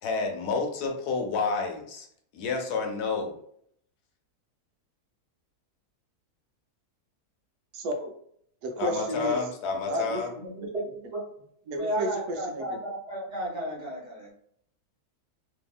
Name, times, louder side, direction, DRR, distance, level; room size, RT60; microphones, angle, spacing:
voice 1, 0.0-2.1 2.3-3.4 8.8-10.3, left 4 dB, 80° left, 2 dB, 1.2 m, -29 dB
voice 2, 7.7-8.1 8.6-9.5 9.9-10.7 11.0-11.1 11.7-12.8, right 1 dB, 80° right, 4 dB, 1.1 m, -32 dB
voice 3, 10.4-11.2 11.7-14.3, right 1 dB, 35° right, -6 dB, 1.0 m, -33 dB
2.7 x 2.7 x 2.3 m, 0.67 s
omnidirectional pair, 1.6 m